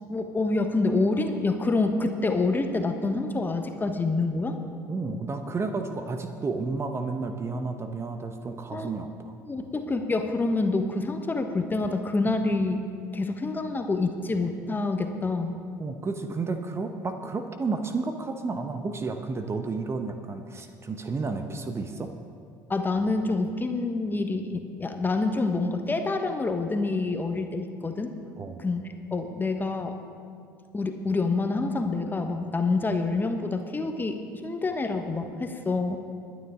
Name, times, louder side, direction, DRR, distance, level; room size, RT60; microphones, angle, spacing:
voice 1, 0.1-4.6 8.7-8.9 9.5-12.8 13.1-15.5 22.7-28.1 28.6-28.8 29.1-30.0 30.7-36.0, left 3 dB, 20° left, 5 dB, 1.3 m, -27 dB
voice 2, 4.9-9.3 15.8-22.1 28.4-28.6, right 3 dB, 25° right, 7 dB, 1.0 m, -31 dB
21.5 x 9.6 x 3.8 m, 2.3 s
figure-of-eight pair, 65°, 10 cm